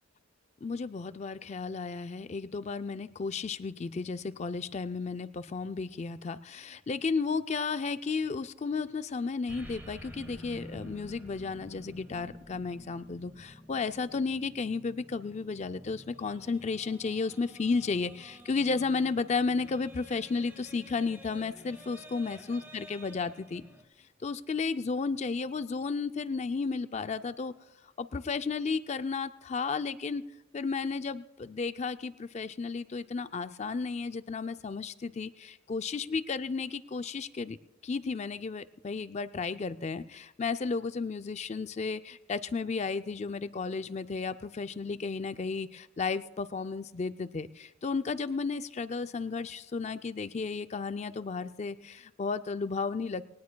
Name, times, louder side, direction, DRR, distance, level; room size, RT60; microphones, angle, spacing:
voice 1, 0.6-23.6 24.2-27.5 28.0-30.3 30.5-37.6 37.8-53.2, left 4 dB, 35° left, 11 dB, 0.4 m, -33 dB
sound 1, 9.5-23.8, equal, 10° right, 1.5 m, -50 dB
20.0 x 18.5 x 2.2 m, 0.94 s
head